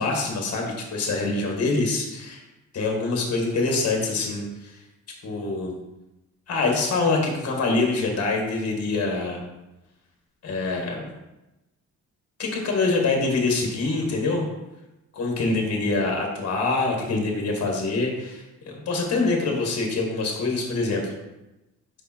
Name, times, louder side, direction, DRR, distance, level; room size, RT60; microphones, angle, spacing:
voice 1, 0.0-2.4 2.7-4.8 5.2-5.7 6.5-9.4 10.4-11.1 12.4-14.5 15.1-21.1, left 3 dB, 55° left, 1 dB, 1.8 m, -25 dB
5.3 x 4.9 x 4.5 m, 0.97 s
cardioid pair, 90°, 30 cm